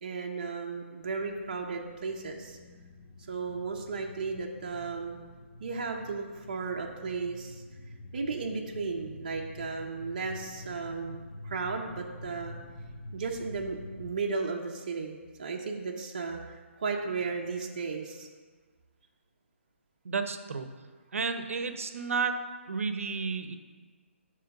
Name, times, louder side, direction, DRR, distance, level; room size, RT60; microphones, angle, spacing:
voice 1, 0.0-2.6 3.3-5.2 5.6-7.6 8.1-12.6 13.1-18.3, right 4 dB, 35° right, 0 dB, 0.6 m, -35 dB
sound 1, 1.0-14.1, left 1 dB, 50° left, 0.6 m, -47 dB
voice 2, 20.0-20.7 21.1-22.4 22.7-23.6, right 5 dB, 85° right, 8 dB, 0.7 m, -31 dB
7.6 x 3.1 x 5.8 m, 1.5 s
hypercardioid pair, 180°, 7 cm